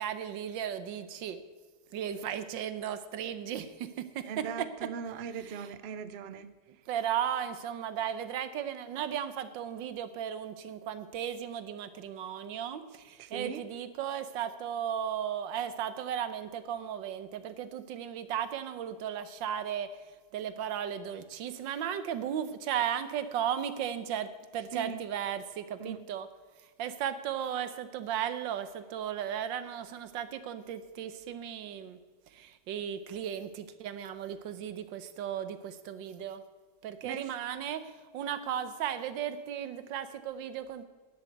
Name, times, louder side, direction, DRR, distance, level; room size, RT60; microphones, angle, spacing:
voice 1, 0.0-1.4 1.9-3.9 4.1-4.9 5.3-5.7 6.9-19.9 20.3-24.3 24.5-26.3 26.8-32.0 32.3-36.4 36.8-37.8 38.1-40.8, right 9 dB, 90° right, 12 dB, 1.6 m, -35 dB
voice 2, 4.3-6.5 13.2-13.6 24.7-25.0 25.8-26.0 37.0-37.3, right 7 dB, 70° right, 13 dB, 0.6 m, -39 dB
10.5 x 7.8 x 8.0 m, 1.4 s
omnidirectional pair, 1.9 m